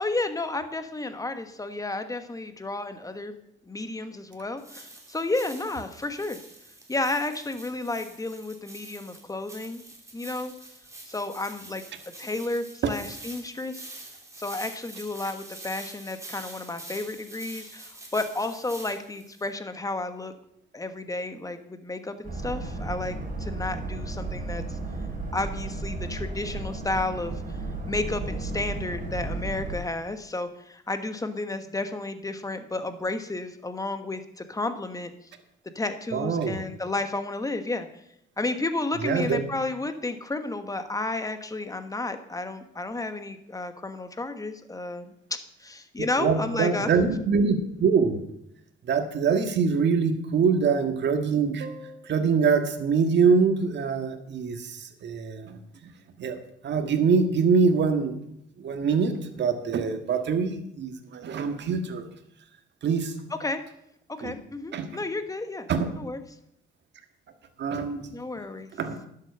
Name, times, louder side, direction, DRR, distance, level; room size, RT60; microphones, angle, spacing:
voice 1, 0.0-3.4 3.6-6.4 6.9-9.8 10.1-10.5 11.1-11.8 12.2-13.9 14.4-20.3 20.7-24.8 25.3-27.4 27.9-35.1 35.7-37.9 38.4-46.9 63.4-63.6 64.2-65.7 66.0-66.2 68.1-68.7, left 2 dB, 15° left, 9 dB, 1.3 m, -32 dB
sound 1, 4.6-19.5, right 2 dB, 15° right, 3.0 m, -45 dB
Boat Water vehicle, 22.2-29.8, right 3 dB, 40° right, 3.8 m, -33 dB
voice 2, 36.1-36.6 39.0-39.4 46.0-48.2 48.8-55.9 56.2-58.2 58.6-62.0 62.8-63.1 64.2-64.3 64.7-64.9 65.7-65.9 67.6-68.1 68.8-69.0, right 5 dB, 60° right, 7 dB, 1.7 m, -24 dB
11.5 x 7.8 x 6.7 m, 0.76 s
cardioid pair, 90°, 20 cm